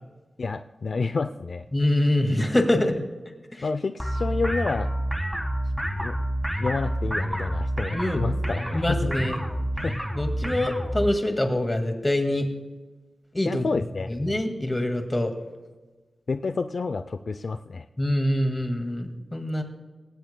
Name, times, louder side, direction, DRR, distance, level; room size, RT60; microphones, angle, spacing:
voice 1, 0.4-1.7 3.0-3.1 3.6-4.9 6.0-6.2 6.6-9.1 9.8-10.0 13.4-14.1 16.3-17.8, left 4 dB, 60° left, 10 dB, 0.4 m, -29 dB
voice 2, 1.7-2.9 7.9-8.3 8.7-9.4 10.2-12.5 13.3-13.7 14.2-15.3 18.0-19.6, left 1 dB, 20° left, 4 dB, 2.0 m, -24 dB
sound 1, 4.0-11.1, right 1 dB, ahead, 1.6 m, -28 dB
19.5 x 17.5 x 2.2 m, 1.2 s
wide cardioid pair, 100°, 0 cm